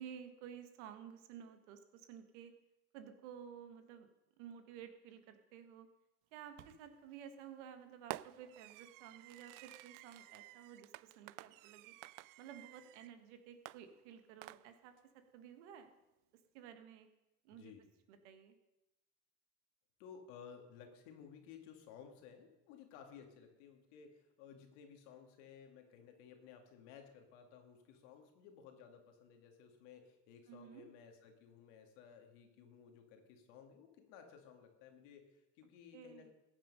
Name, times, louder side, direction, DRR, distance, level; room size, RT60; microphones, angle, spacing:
voice 1, 0.0-2.5 2.9-4.1 4.4-5.9 6.3-11.9 12.4-14.9 15.3-15.9 16.5-17.1 17.4-17.7 18.1-18.5 30.5-30.9 35.9-36.3, right 8 dB, 85° right, 8 dB, 1.6 m, -53 dB
Fireworks, 6.6-7.0 8.1-13.1 13.7-15.0, right 19 dB, 65° right, 0.5 m, -52 dB
voice 2, 17.5-17.9 20.0-36.3, left 7 dB, 80° left, 5 dB, 2.1 m, -57 dB
15.0 x 8.9 x 5.4 m, 0.96 s
hypercardioid pair, 75°, 35 cm